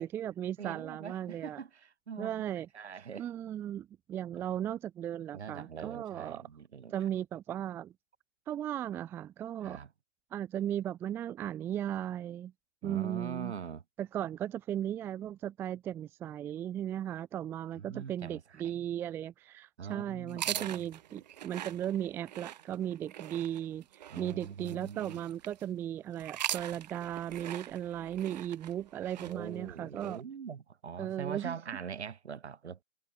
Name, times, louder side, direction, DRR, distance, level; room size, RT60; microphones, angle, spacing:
voice 1, 0.0-1.6 2.2-2.7 3.2-6.4 6.9-7.9 8.5-9.8 10.3-12.5 12.8-13.5 14.0-23.8 24.2-30.2 31.0-31.5, right 11 dB, 5° right, 0.9 m, -36 dB
voice 2, 0.6-3.2 5.3-7.0 9.6-9.9 12.8-13.8 17.7-18.7 19.8-20.8 24.1-25.2 29.2-32.8, right 7 dB, 55° right, 4.7 m, -43 dB
sound 1, 20.3-25.6 26.2-30.2, right 11 dB, 30° right, 1.9 m, -42 dB
figure-of-eight pair, 145°, 41 cm